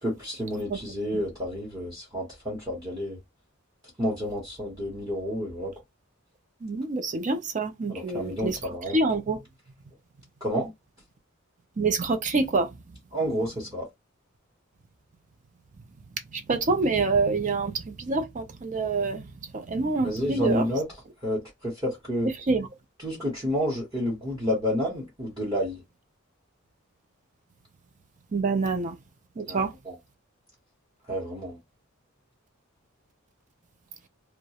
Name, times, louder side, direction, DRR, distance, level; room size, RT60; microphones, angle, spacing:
voice 1, 0.0-3.2 4.0-5.7 7.9-9.0 10.4-10.7 13.1-13.8 20.0-20.9 21.2-22.3 23.0-25.8 29.5-30.0 31.1-31.6, equal, 20° right, 0.8 m, -30 dB
voice 2, 6.6-8.6 8.9-9.4 11.8-12.7 16.3-19.3 19.5-20.7 22.5-22.7 28.3-29.0 29.4-29.7, right 3 dB, 35° right, 0.4 m, -26 dB
2.3 x 2.1 x 2.8 m
head